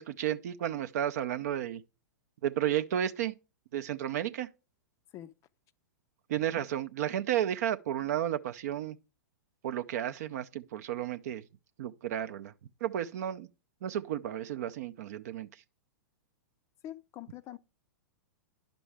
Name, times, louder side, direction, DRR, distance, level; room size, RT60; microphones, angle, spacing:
voice 1, 0.0-1.8 2.4-3.3 3.7-4.5 6.3-9.0 9.6-11.4 11.8-12.5 12.8-13.5 13.8-15.5, right 10 dB, 55° right, 0.5 m, -32 dB
voice 2, 16.8-17.6, left 12 dB, 30° left, 0.4 m, -44 dB
10.0 x 6.0 x 3.4 m
figure-of-eight pair, 105°, 10 cm